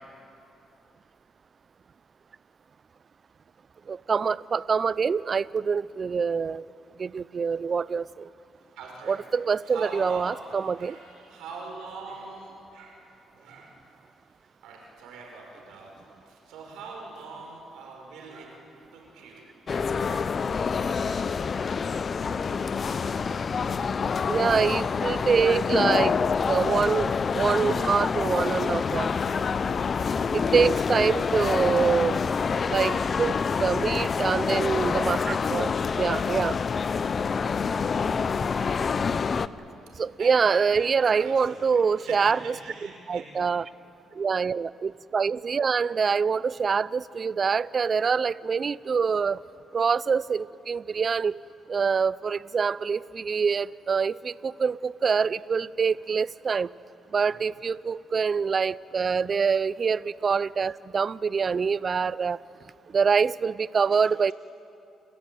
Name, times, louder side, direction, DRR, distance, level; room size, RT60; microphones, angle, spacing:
voice 1, 3.9-6.6 7.0-8.3 9.1-11.0 24.3-26.1 26.5-29.1 30.3-32.2 32.7-33.3 33.6-36.6 40.0-42.5 43.1-43.6 44.2-49.4 49.7-51.4 51.7-56.7 57.1-62.4 62.9-64.3, right 5 dB, 40° right, 20 dB, 0.4 m, -25 dB
voice 2, 8.8-9.2 9.6-13.0 13.3-13.8 14.6-15.9 16.2-18.7 18.9-20.2 20.5-21.3 32.6-33.1 40.2-40.9 41.2-43.3 57.1-57.4 63.9-64.0, right 3 dB, 90° right, 0 dB, 5.9 m, -43 dB
sound 1, 19.7-39.5, left 5 dB, 45° left, 0.6 m, -27 dB
30.0 x 15.0 x 9.3 m, 2.7 s
cardioid pair, 90°, 0 cm